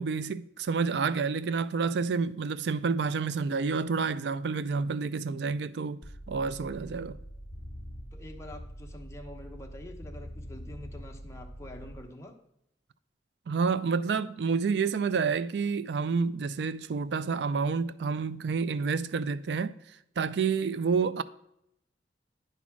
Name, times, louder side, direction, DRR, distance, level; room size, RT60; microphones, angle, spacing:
voice 1, 0.0-6.0 6.3-7.2 13.5-19.7 20.2-21.2, right 5 dB, 70° right, 0.4 m, -29 dB
sound 1, 6.0-12.0, equal, 40° left, 1.7 m, -44 dB
voice 2, 8.1-12.3, left 1 dB, 15° left, 1.0 m, -46 dB
10.0 x 4.1 x 6.0 m
head